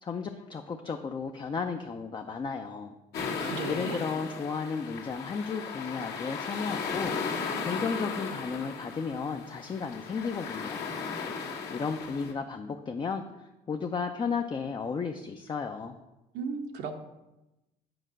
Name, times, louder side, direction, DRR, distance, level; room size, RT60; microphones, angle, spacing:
voice 1, 0.0-2.9 3.7-10.9 11.7-16.0, left 5 dB, 30° left, 4 dB, 0.5 m, -34 dB
sound 1, 3.1-12.3, left 5 dB, 70° left, 1.8 m, -36 dB
voice 2, 3.1-4.0 16.3-17.0, right 5 dB, 80° right, 4 dB, 1.0 m, -36 dB
7.9 x 4.4 x 6.3 m, 0.98 s
cardioid pair, 110°, 17 cm